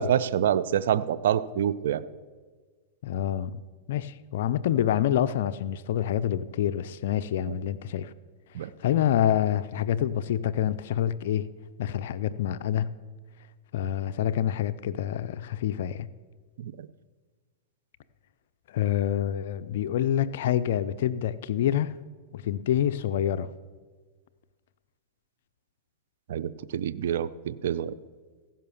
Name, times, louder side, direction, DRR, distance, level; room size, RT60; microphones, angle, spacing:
voice 1, 0.0-2.0 7.5-7.6 8.5-8.7 16.6-16.9 26.3-27.9, right 9 dB, 75° right, 0.5 m, -27 dB
voice 2, 3.0-3.6 3.9-8.1 8.6-11.5 11.8-12.9 13.7-16.1 18.7-22.0 22.3-23.5, left 10 dB, 70° left, 0.4 m, -27 dB
15.5 x 5.6 x 7.0 m
hypercardioid pair, 120°, 0 cm